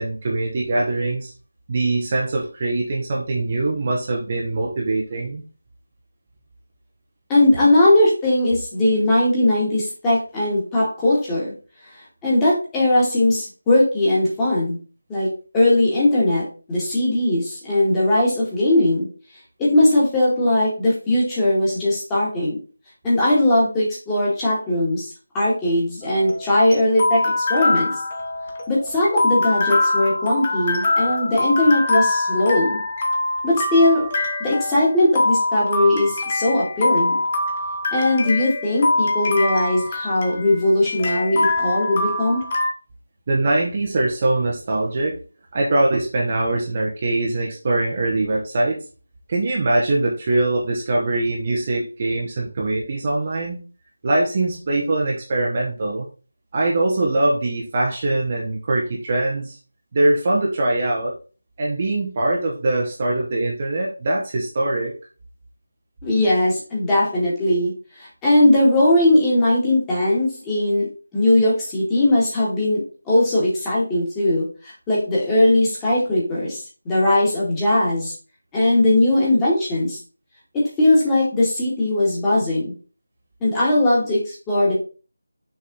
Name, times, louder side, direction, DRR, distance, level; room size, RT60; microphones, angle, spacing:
voice 1, 0.0-1.3 1.7-5.4 43.3-45.2 45.5-48.8 49.3-53.6 54.0-56.0 56.5-59.6 59.9-61.1 61.6-65.0, right 2 dB, 30° right, -2 dB, 1.1 m, -22 dB
voice 2, 7.3-11.5 12.2-14.8 15.1-19.1 19.6-22.6 23.0-27.9 28.7-32.8 33.4-34.1 34.4-37.2 37.9-42.4 66.0-67.7 68.0-70.9 71.1-72.8 73.1-78.1 78.5-80.0 80.5-82.7 83.4-84.7, left 1 dB, 10° left, -7 dB, 2.0 m, -19 dB
sound 1, 26.0-42.7, left 2 dB, 25° left, 1.1 m, -23 dB
6.3 x 4.1 x 4.0 m, 0.36 s
figure-of-eight pair, 160°, 0 cm